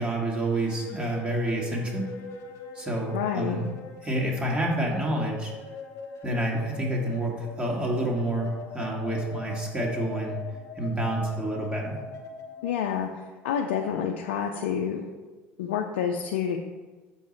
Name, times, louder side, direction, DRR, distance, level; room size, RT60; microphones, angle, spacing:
voice 1, 0.0-2.1 2.7-3.7 4.0-5.5 6.2-10.4 10.8-12.0, right 1 dB, 20° right, -2 dB, 2.0 m, -28 dB
sound 1, 0.5-12.7, left 4 dB, 55° left, 1.0 m, -41 dB
voice 2, 3.1-3.6 12.6-15.1 15.6-16.6, left 8 dB, 85° left, 3 dB, 0.5 m, -28 dB
7.0 x 4.7 x 4.2 m, 1.3 s
hypercardioid pair, 80°, 6 cm